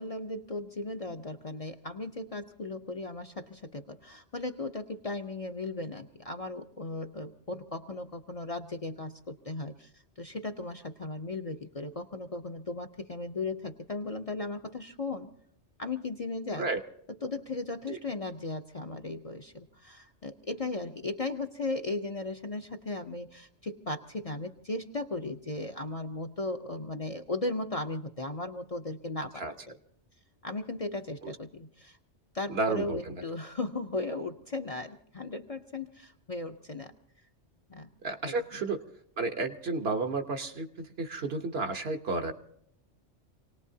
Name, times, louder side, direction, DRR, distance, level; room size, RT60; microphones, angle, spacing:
voice 1, 0.0-9.9 10.2-15.3 15.8-16.7 17.1-29.8 30.4-32.0 32.3-36.9 37.7-37.9 38.2-38.4, left 2 dB, 40° left, 6 dB, 0.6 m, -36 dB
voice 2, 32.5-33.1 38.0-38.8 39.2-42.3, right 3 dB, 60° right, 5 dB, 1.2 m, -32 dB
27.0 x 18.5 x 2.7 m, 0.70 s
omnidirectional pair, 1.2 m